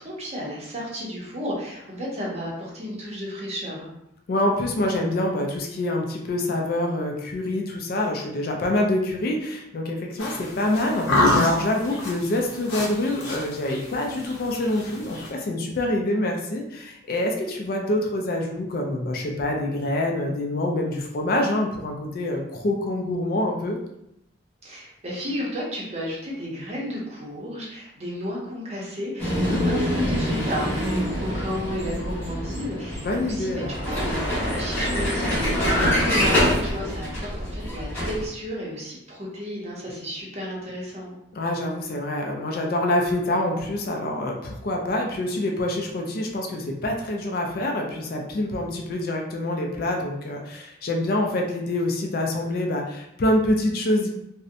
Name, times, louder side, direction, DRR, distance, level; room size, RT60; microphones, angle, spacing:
voice 1, 0.0-3.9 24.6-35.4 35.7-41.2, equal, 35° right, -4 dB, 0.6 m, -32 dB
voice 2, 4.3-23.8 29.3-29.6 32.9-33.7 41.3-54.1, left 1 dB, 50° left, 1 dB, 0.3 m, -26 dB
sound 1, 10.2-15.3, left 2 dB, 75° left, 0.7 m, -26 dB
Vehicle, 29.2-38.3, equal, 10° left, 1.0 m, -25 dB
2.6 x 2.0 x 2.5 m, 0.80 s
head